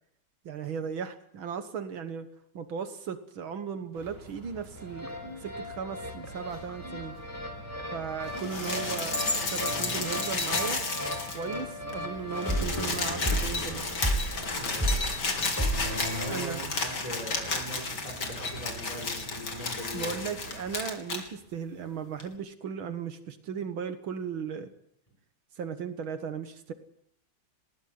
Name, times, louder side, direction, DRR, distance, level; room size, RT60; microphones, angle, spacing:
voice 1, 0.5-2.3 2.5-5.2 5.4-7.2 7.9-9.3 9.5-10.8 11.3-13.9 16.3-16.7 19.9-24.7 25.6-26.7, right 6 dB, 75° right, 9 dB, 2.1 m, -36 dB
sound 1, 3.9-20.8, right 2 dB, 55° right, 5.2 m, -47 dB
sound 2, 4.8-16.3, equal, 5° right, 5.0 m, -34 dB
sound 3, 8.3-11.6 11.9-12.0 12.2-21.2 22.2-22.3, left 3 dB, 55° left, 3.3 m, -32 dB
voice 2, 9.7-10.0 14.5-15.1 15.7-20.2, right 1 dB, 15° left, 2 dB, 6.7 m, -41 dB
20.0 x 15.5 x 9.5 m, 0.73 s
omnidirectional pair, 2.3 m